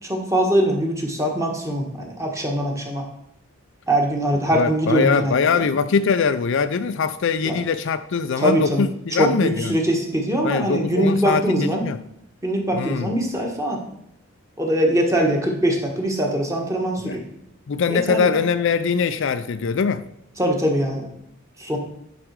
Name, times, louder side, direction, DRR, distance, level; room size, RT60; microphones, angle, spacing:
voice 1, 0.1-3.0 3.9-5.6 7.4-7.6 8.4-8.8 9.1-11.8 12.4-13.8 14.6-17.2 17.9-18.3 20.4-21.1 21.6-21.8, right 1 dB, 15° right, 1.4 m, -22 dB
voice 2, 4.5-9.8 10.4-12.0 12.7-13.1 17.0-17.2 17.7-20.0, left 5 dB, 60° left, 0.4 m, -22 dB
9.9 x 5.0 x 4.7 m
head